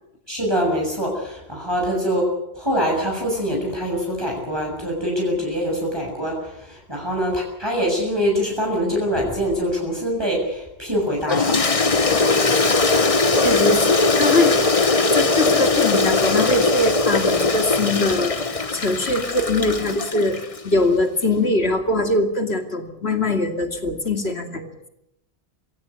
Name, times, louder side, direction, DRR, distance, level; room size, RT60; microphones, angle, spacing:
voice 1, 0.3-2.3 2.5-11.6, equal, 25° right, -2 dB, 7.1 m, -24 dB
Toilet flush, 11.3-20.6, left 3 dB, 35° left, 1.2 m, -20 dB
voice 2, 13.2-14.6 15.1-24.9, left 2 dB, 85° left, 5 dB, 2.8 m, -22 dB
25.5 x 16.5 x 8.3 m, 0.84 s
omnidirectional pair, 1.0 m